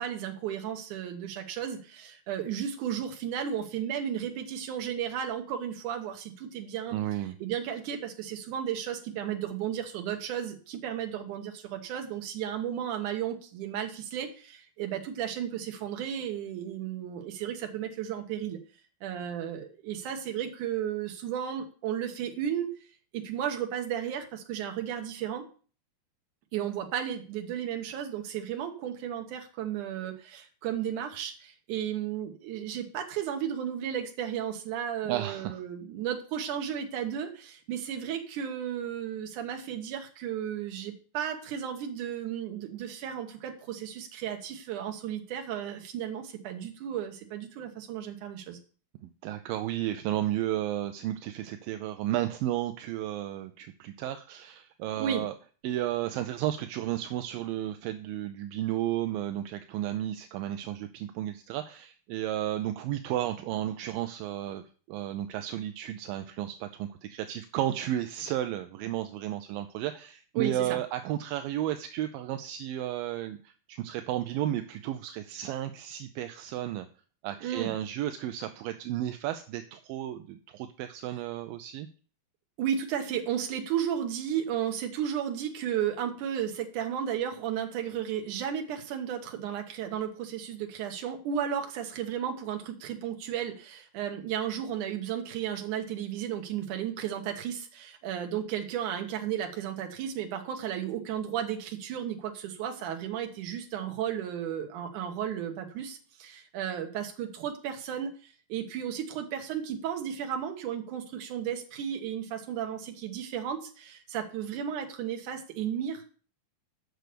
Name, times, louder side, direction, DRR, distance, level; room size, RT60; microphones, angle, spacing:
voice 1, 0.0-7.0 7.4-18.6 19.0-22.7 23.1-25.4 26.5-48.6 55.0-55.3 70.4-70.8 77.4-77.7 82.6-116.1, right 9 dB, 60° right, 4 dB, 2.5 m, -34 dB
voice 2, 6.9-7.4 35.1-35.6 49.2-55.3 55.6-64.6 64.9-76.9 77.2-81.9, right 12 dB, 80° right, 8 dB, 2.1 m, -33 dB
8.0 x 6.2 x 6.8 m, 0.40 s
omnidirectional pair, 4.5 m